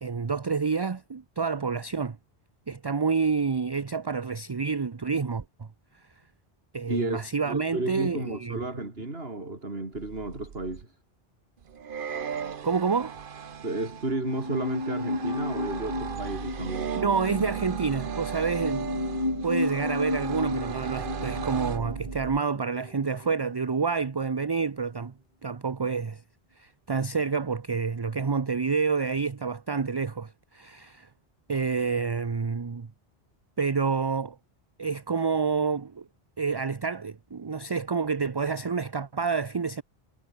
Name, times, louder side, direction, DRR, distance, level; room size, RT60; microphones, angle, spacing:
voice 1, 0.0-2.2 2.7-5.7 6.7-8.6 12.6-13.1 17.0-19.1 19.4-25.1 25.4-26.2 26.6-31.1 31.5-32.9 33.6-34.4 34.8-36.0 36.4-39.8, right 5 dB, 30° right, 0.6 m, -28 dB
voice 2, 6.9-10.9 13.6-16.9, right 2 dB, 75° right, 4.2 m, -33 dB
sound 1, 9.9-10.8 11.6-22.4, right 7 dB, 60° right, 1.1 m, -36 dB
sound 2, 14.2-23.5 23.8-23.9, left 2 dB, 50° left, 3.6 m, -33 dB
omnidirectional pair, 1.0 m